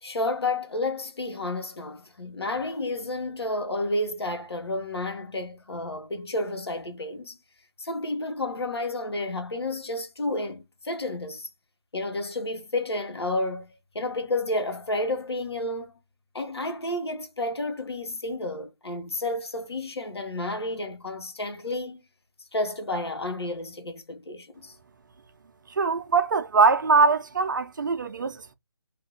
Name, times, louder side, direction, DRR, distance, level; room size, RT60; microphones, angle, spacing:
voice 1, 0.0-7.4 7.8-11.5 11.9-13.7 13.9-15.9 16.3-22.0 22.5-24.7, left 2 dB, 75° left, 1.6 m, -31 dB
voice 2, 25.8-28.5, right 4 dB, 50° right, 0.6 m, -22 dB
2.9 x 2.7 x 3.9 m
figure-of-eight pair, 165°, 13 cm